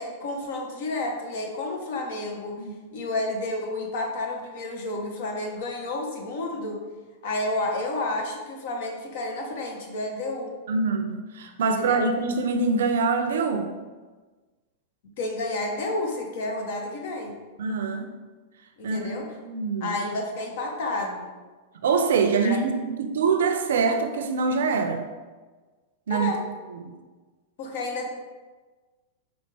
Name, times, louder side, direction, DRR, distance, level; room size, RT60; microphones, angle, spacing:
voice 1, 0.0-6.8 7.2-10.5 11.7-12.0 15.2-17.4 18.8-19.3 19.8-21.3 22.4-22.6 26.1-26.4 27.6-28.1, left 2 dB, 65° left, 1 dB, 0.9 m, -30 dB
voice 2, 10.7-13.7 17.6-18.1 18.8-19.1 19.4-20.0 21.8-25.0 26.1-26.3 26.8-26.9, right 4 dB, 80° right, 6 dB, 0.5 m, -24 dB
5.3 x 2.5 x 3.3 m, 1.3 s
hypercardioid pair, 125°, 0 cm